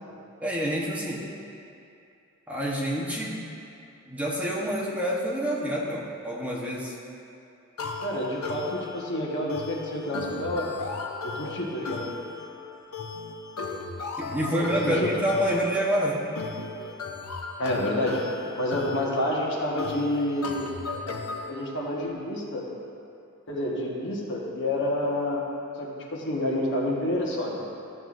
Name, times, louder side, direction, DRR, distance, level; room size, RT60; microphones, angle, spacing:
voice 1, 0.4-1.2 2.5-3.4 4.1-6.9 14.2-16.2, equal, 5° right, -5 dB, 1.0 m, -27 dB
sound 1, 7.8-21.5, left 4 dB, 80° left, 0.8 m, -36 dB
voice 2, 8.0-10.7 11.2-12.1 14.5-15.1 17.6-18.2 18.6-20.7 21.5-22.6 23.5-25.4 25.8-27.7, left 1 dB, 55° left, -3 dB, 1.4 m, -28 dB
13.5 x 7.7 x 2.6 m, 2.6 s
head